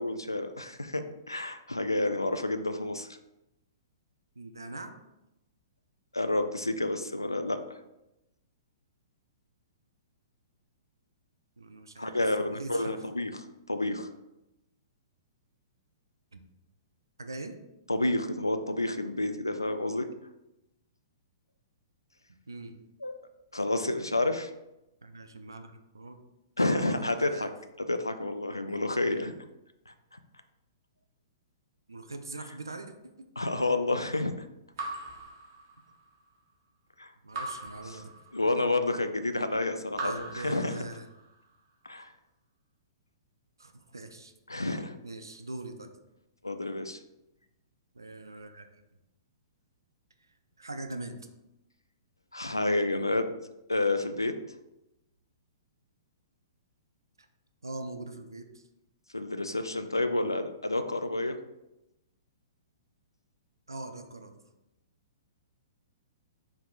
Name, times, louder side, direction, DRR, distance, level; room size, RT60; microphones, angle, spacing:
voice 1, 0.0-3.1 6.1-7.6 12.0-13.3 13.7-14.1 17.9-20.1 23.0-23.1 23.5-24.5 26.6-27.5 27.9-29.3 29.9-30.0 33.4-34.3 37.0-37.1 37.9-38.0 38.3-40.8 41.9-42.1 44.5-45.0 46.4-47.0 52.3-53.3 53.7-54.3 59.1-61.4, left 2 dB, 90° left, 8 dB, 0.3 m, -29 dB
voice 2, 4.4-4.9 11.6-12.1 12.4-13.0 16.3-16.4 17.2-17.6 22.5-22.8 25.0-26.2 26.6-27.5 29.1-29.2 31.9-33.3 37.2-38.1 40.0-41.1 43.6-45.9 47.9-48.7 50.6-51.3 57.6-58.6 63.7-64.4, right 2 dB, 80° right, 7 dB, 0.4 m, -42 dB
Raindrop / Drip, 34.8-36.1 37.3-38.7 39.9-41.3, right 2 dB, 50° right, 1.0 m, -40 dB
4.7 x 3.4 x 2.4 m, 0.91 s
figure-of-eight pair, 115°, 2 cm